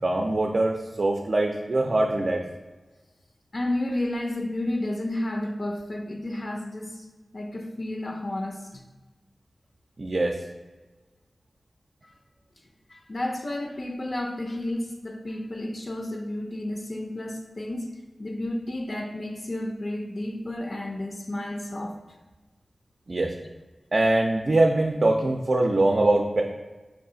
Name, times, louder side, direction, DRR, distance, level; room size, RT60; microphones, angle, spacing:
voice 1, 0.0-2.4 10.0-10.4 23.1-23.3 23.9-26.4, right 2 dB, 55° right, 2 dB, 0.4 m, -23 dB
voice 2, 3.5-7.1 7.3-8.8 12.0-12.1 12.9-17.9 18.2-22.0, left 1 dB, 55° left, 2 dB, 0.5 m, -31 dB
4.6 x 2.4 x 3.8 m, 1.2 s
cardioid pair, 45°, 0 cm